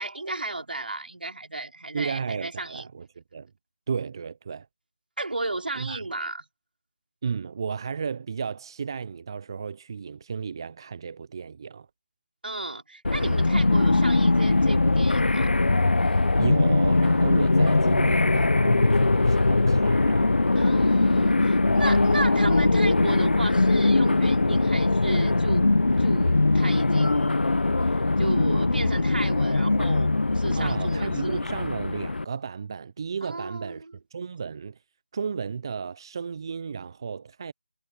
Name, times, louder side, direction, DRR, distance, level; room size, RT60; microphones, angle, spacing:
voice 1, 0.0-2.8 5.2-6.4 12.4-15.5 20.5-27.4 27.9-31.5 33.2-33.9, right 2 dB, 70° right, 4.2 m, -34 dB
voice 2, 1.9-3.1 3.3-3.5 3.9-4.7 5.8-6.0 7.2-11.9 16.4-20.3 30.6-33.9 34.1-34.8 35.1-37.5, right 6 dB, 25° right, 0.5 m, -33 dB
sound 1, 13.0-32.2, left 2 dB, 80° left, 0.6 m, -21 dB
figure-of-eight pair, 165°, 5 cm